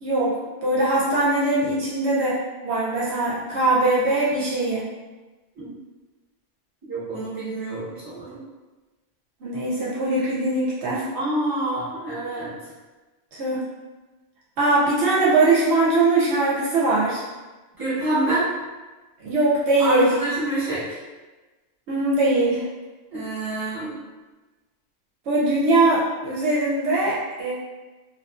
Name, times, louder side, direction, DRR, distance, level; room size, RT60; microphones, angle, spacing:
voice 1, 0.0-4.8 9.4-11.1 13.4-13.6 14.6-17.2 19.2-20.1 21.9-22.7 25.3-27.5, right 2 dB, 70° right, -6 dB, 0.8 m, -21 dB
voice 2, 6.9-8.4 11.1-12.5 17.8-18.5 19.8-21.0 23.1-24.0, right 2 dB, 20° right, -11 dB, 1.0 m, -27 dB
2.5 x 2.3 x 2.3 m, 1.2 s
omnidirectional pair, 1.3 m